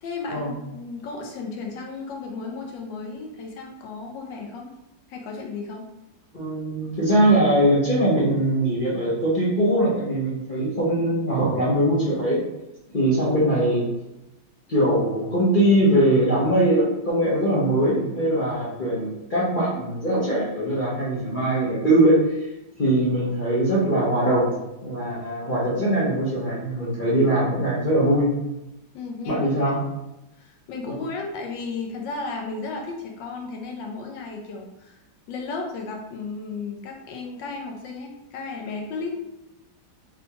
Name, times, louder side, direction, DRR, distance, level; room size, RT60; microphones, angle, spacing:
voice 1, 0.0-4.7 5.1-5.8 28.9-29.7 30.4-35.0 35.3-39.1, left 4 dB, 80° left, 0 dB, 1.3 m, -34 dB
voice 2, 6.3-12.4 12.9-13.9 14.7-22.4 22.8-24.6 24.8-28.3 29.3-29.8, right 1 dB, 60° left, -7 dB, 0.5 m, -21 dB
4.1 x 2.2 x 2.8 m, 0.92 s
omnidirectional pair, 2.0 m